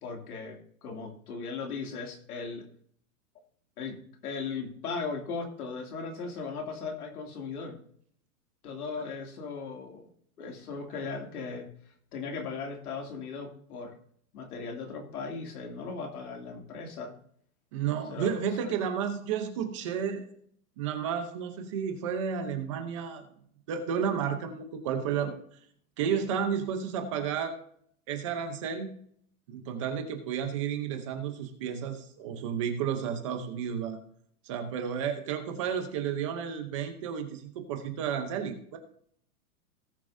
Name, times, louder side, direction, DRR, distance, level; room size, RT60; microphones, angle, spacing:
voice 1, 0.0-2.6 3.8-4.0 4.2-7.8 8.6-10.1 10.4-13.9 14.3-17.1 18.1-18.3 18.6-18.7, left 4 dB, 85° left, 1 dB, 2.7 m, -37 dB
voice 2, 17.7-20.2 20.8-23.3 23.7-25.6 26.0-27.6 28.1-28.9 29.5-34.0 34.4-38.8, right 7 dB, 20° right, 6 dB, 0.7 m, -32 dB
18.0 x 6.7 x 2.7 m, 0.63 s
supercardioid pair, 175°, 44 cm